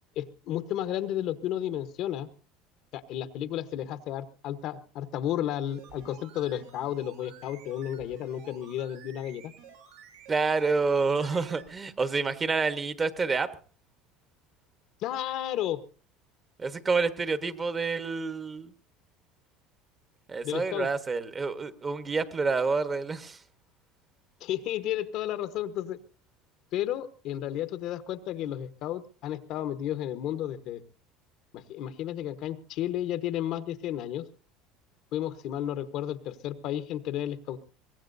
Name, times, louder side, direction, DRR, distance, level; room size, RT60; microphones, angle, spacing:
voice 1, 0.2-2.3 2.9-9.5 15.0-15.8 20.4-20.9 24.4-26.0 26.7-30.8 31.5-34.3 35.1-37.6, left 11 dB, 60° left, 1.1 m, -32 dB
sound 1, 5.7-11.7 12.0-12.1, right 7 dB, 90° right, 6.3 m, -52 dB
voice 2, 10.3-13.5 16.6-18.7 20.3-23.4, right 4 dB, 25° right, 1.2 m, -28 dB
23.5 x 17.5 x 2.7 m
supercardioid pair, 120°, 0 cm